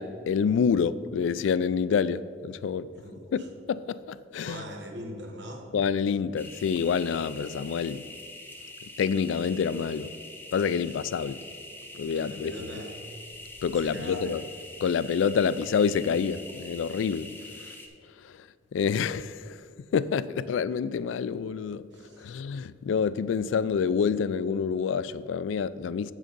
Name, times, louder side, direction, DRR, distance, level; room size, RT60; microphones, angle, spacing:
voice 1, 0.0-2.9 3.3-3.4 3.7-4.6 5.7-8.1 9.0-10.1 10.5-11.4 11.9-12.5 13.6-14.4 14.8-17.3 18.2-18.4 18.7-19.6 19.9-21.8 22.2-26.1, left 6 dB, 80° left, 0.3 m, -27 dB
voice 2, 4.4-5.7 12.1-12.9 13.7-14.3 17.6-17.8 21.9-22.4, equal, 70° right, 1.3 m, -41 dB
sound 1, 6.4-17.9, left 2 dB, 10° left, 0.8 m, -44 dB
7.7 x 6.3 x 5.2 m
head